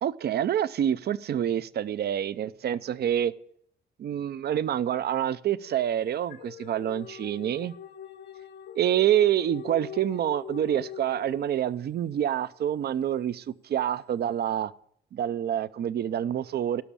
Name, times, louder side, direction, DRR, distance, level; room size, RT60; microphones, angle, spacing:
voice 1, 0.0-3.3 4.0-7.7 8.8-14.7 15.1-16.8, right 10 dB, 55° right, 0.6 m, -27 dB
sound 1, 5.6-12.0, left 9 dB, 60° left, 0.7 m, -43 dB
12.5 x 6.0 x 8.5 m
cardioid pair, 90°, 20 cm